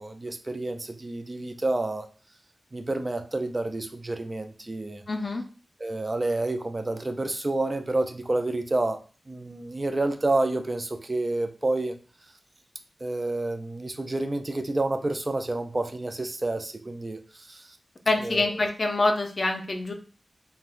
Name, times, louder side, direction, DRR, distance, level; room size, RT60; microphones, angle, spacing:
voice 1, 0.0-2.1 2.7-5.0 5.8-9.0 9.3-12.0 13.0-17.8 18.2-18.7, right 2 dB, 35° right, 6 dB, 0.4 m, -29 dB
voice 2, 5.1-5.4 18.1-19.9, left 2 dB, 50° left, 3 dB, 0.6 m, -25 dB
3.4 x 2.2 x 2.5 m, 0.36 s
wide cardioid pair, 75°, 0 cm